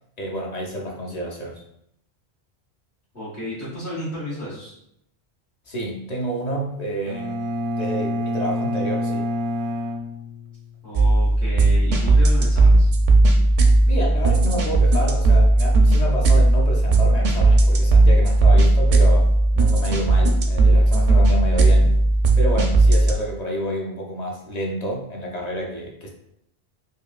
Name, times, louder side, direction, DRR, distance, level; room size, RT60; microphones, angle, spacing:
voice 1, 0.2-1.6 5.7-7.4 7.7-9.3 13.9-22.0 22.4-26.1, right 1 dB, 45° left, -1 dB, 0.6 m, -29 dB
voice 2, 3.1-4.7 10.8-12.9, equal, 80° left, -12 dB, 1.7 m, -32 dB
Bowed string instrument, 7.1-10.9, left 1 dB, 80° right, 0.9 m, -27 dB
sound 1, 11.0-23.1, right 2 dB, 55° right, 0.6 m, -16 dB
4.6 x 2.4 x 2.4 m, 0.74 s
omnidirectional pair, 1.1 m